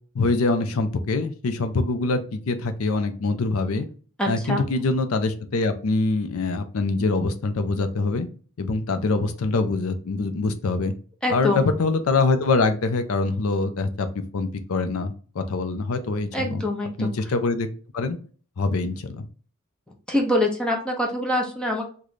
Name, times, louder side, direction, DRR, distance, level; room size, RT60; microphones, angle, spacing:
voice 1, 0.1-3.9 4.3-8.3 8.6-10.9 11.3-14.1 14.3-16.6 17.0-17.7 17.9-18.2 18.6-19.3, left 3 dB, 80° left, 8 dB, 0.5 m, -24 dB
voice 2, 4.2-4.6 11.2-11.6 16.3-17.1 20.1-21.8, left 1 dB, 5° left, 0 dB, 0.7 m, -24 dB
3.2 x 2.2 x 3.9 m, 0.42 s
head